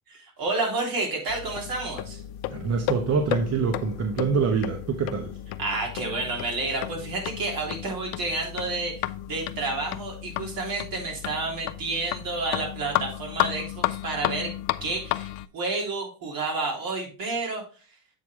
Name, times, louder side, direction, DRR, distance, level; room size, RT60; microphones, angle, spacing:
voice 1, 0.1-2.2 5.6-14.5 14.8-17.6, right 3 dB, 65° right, 0 dB, 3.2 m, -30 dB
sound 1, 1.3-15.5, left 15 dB, 80° left, 0.6 m, -33 dB
voice 2, 2.5-5.3, right 5 dB, 40° right, 4 dB, 1.0 m, -25 dB
7.9 x 4.7 x 3.5 m, 0.36 s
cardioid pair, 110°, 37 cm